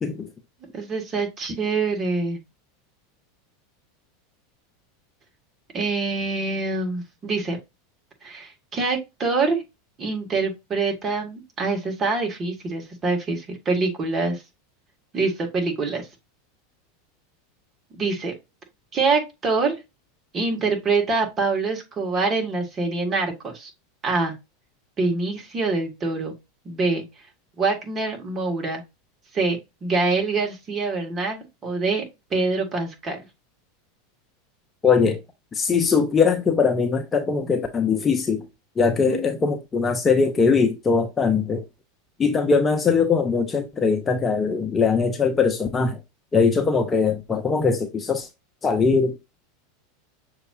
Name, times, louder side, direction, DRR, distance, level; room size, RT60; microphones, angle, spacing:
voice 1, 0.7-2.4 5.7-7.6 8.2-9.6 10.0-14.4 15.1-16.1 17.9-18.3 18.9-19.8 20.3-23.7 24.0-24.3 25.0-26.3 26.7-27.0 27.6-28.8 29.3-32.0 32.3-33.2 39.0-39.2, right 3 dB, 30° right, 2.0 m, -25 dB
voice 2, 34.8-35.2 35.5-38.4 38.8-41.6 42.2-46.0 46.3-48.3 48.6-49.2, left 5 dB, 25° left, 0.8 m, -21 dB
6.6 x 3.0 x 2.6 m
hypercardioid pair, 85°, 0 cm